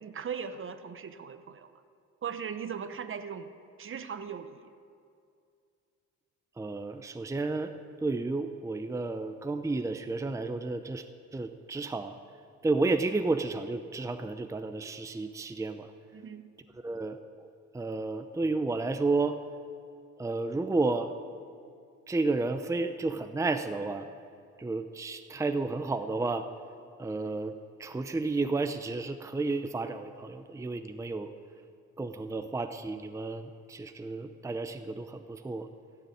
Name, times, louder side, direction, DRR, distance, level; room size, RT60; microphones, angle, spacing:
voice 1, 0.0-1.7 2.2-3.5 3.8-4.7 16.1-16.5, right 7 dB, 45° right, 10 dB, 0.9 m, -38 dB
voice 2, 6.6-7.7 8.0-11.0 11.3-12.2 12.6-15.9 16.7-17.5 17.7-19.4 20.2-21.1 22.1-24.1 24.6-26.5 27.0-31.3 32.0-35.7, right 3 dB, 10° right, 8 dB, 0.6 m, -32 dB
16.0 x 7.0 x 9.8 m, 2.4 s
cardioid pair, 90°, 30 cm